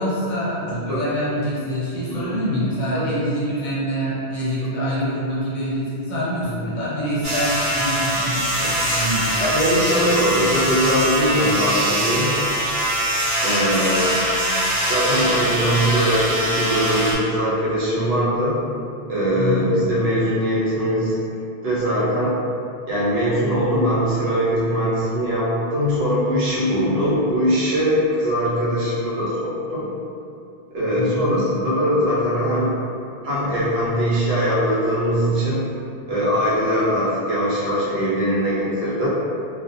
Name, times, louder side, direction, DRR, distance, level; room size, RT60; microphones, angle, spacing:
voice 1, 0.0-9.4 19.3-19.7 30.9-31.5, equal, 55° left, -8 dB, 0.6 m, -25 dB
voice 2, 0.6-1.0 2.1-2.3 2.9-3.0 6.4-6.6 8.6-8.8 9.4-12.3 13.4-14.3 14.9-18.6 19.1-21.2 21.6-22.4 22.9-29.9 30.7-32.7 33.2-35.6 36.1-39.1, equal, 80° right, -8 dB, 0.9 m, -21 dB
sound 1, 7.2-17.1, right 1 dB, 55° right, 1.0 m, -22 dB
2.4 x 2.0 x 2.6 m, 2.6 s
omnidirectional pair, 1.1 m